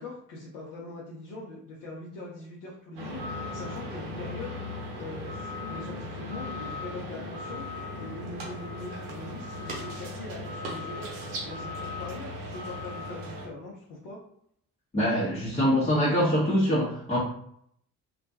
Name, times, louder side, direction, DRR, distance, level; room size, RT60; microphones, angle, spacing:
voice 1, 0.0-4.6 4.9-7.7 8.0-11.1 11.4-14.2, left 2 dB, 65° left, -5 dB, 0.8 m, -42 dB
sound 1, 3.0-13.5, left 2 dB, 70° right, 0.9 m, -37 dB
voice 2, 14.9-17.2, equal, 15° left, -8 dB, 0.8 m, -24 dB
2.3 x 2.1 x 2.6 m, 0.68 s
figure-of-eight pair, 45°, 45 cm